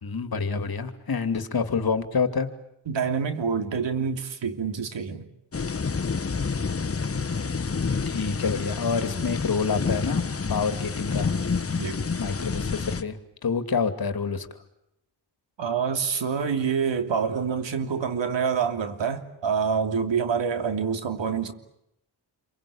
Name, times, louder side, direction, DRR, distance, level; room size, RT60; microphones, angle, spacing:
voice 1, 0.0-2.5 7.9-11.5 12.2-14.5, left 5 dB, 50° left, 2.7 m, -27 dB
voice 2, 2.9-5.3 11.7-12.0 15.6-21.5, right 6 dB, 70° right, 3.1 m, -27 dB
sound 1, 5.5-13.0, left 5 dB, 30° left, 1.5 m, -28 dB
29.0 x 23.5 x 8.7 m
cardioid pair, 90°, 45 cm